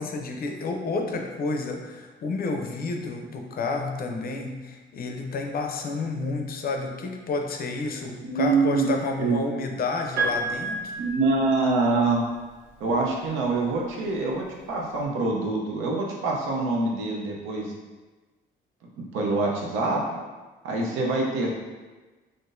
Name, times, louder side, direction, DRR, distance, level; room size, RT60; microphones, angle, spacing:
voice 1, 0.0-11.0, left 3 dB, 50° left, 3 dB, 0.5 m, -30 dB
voice 2, 8.2-8.9 9.2-9.4 11.0-12.2 12.8-17.7 19.1-20.0 20.6-21.5, right 3 dB, 90° right, -1 dB, 0.6 m, -25 dB
Piano, 10.2-12.2 13.4-13.5, right 2 dB, 55° right, 1.1 m, -30 dB
3.6 x 2.5 x 2.5 m, 1.3 s
cardioid pair, 90°, 20 cm